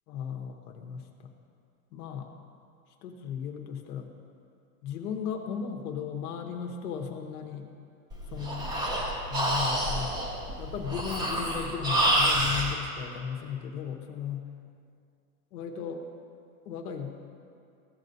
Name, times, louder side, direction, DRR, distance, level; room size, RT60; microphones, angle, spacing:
voice 1, 0.1-1.3 1.9-2.3 3.0-4.1 4.8-7.7 8.3-8.7 9.3-10.2 10.6-14.5 15.5-16.0 16.6-17.2, left 7 dB, 75° left, 3 dB, 1.0 m, -36 dB
Breathing, 8.1-12.7, right 1 dB, 10° right, 0.4 m, -28 dB
14.5 x 7.5 x 2.7 m, 2.4 s
supercardioid pair, 150°, 45 cm